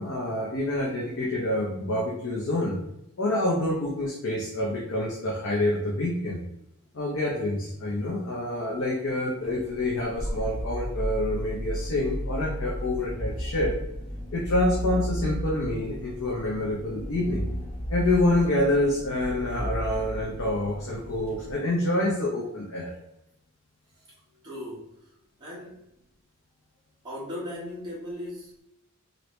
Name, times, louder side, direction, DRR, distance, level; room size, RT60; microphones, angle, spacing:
voice 1, 0.0-2.8 3.2-6.4 6.9-13.8 14.3-17.5 17.9-22.9, left 1 dB, 65° left, -4 dB, 0.7 m, -27 dB
sound 1, 9.4-21.5, equal, 10° left, 1.3 m, -34 dB
voice 2, 24.4-24.9 25.4-25.8 27.0-28.6, left 1 dB, 20° right, -8 dB, 1.3 m, -37 dB
3.0 x 2.7 x 3.1 m, 0.82 s
head